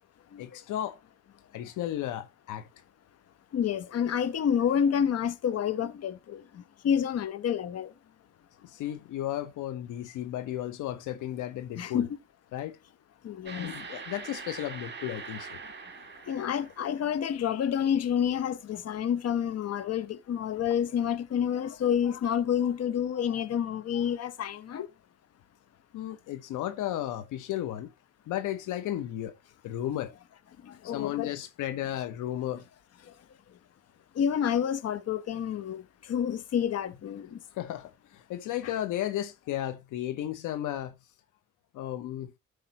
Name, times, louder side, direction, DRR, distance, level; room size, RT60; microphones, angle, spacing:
voice 1, 0.4-1.0 1.5-2.7 8.6-12.1 12.5-12.8 13.6-15.6 25.9-27.9 28.3-29.3 29.6-30.1 30.8-32.6 37.6-40.9 41.7-42.3, left 12 dB, 85° left, 0.9 m, -34 dB
voice 2, 3.5-7.9 11.8-12.1 13.2-13.7 16.3-24.9 30.6-31.3 33.0-33.1 34.1-37.4, left 8 dB, 55° left, 0.9 m, -29 dB
sound 1, 13.5-17.3, right 5 dB, 35° right, 2.1 m, -43 dB
14.0 x 5.0 x 2.9 m
cardioid pair, 90°, 30 cm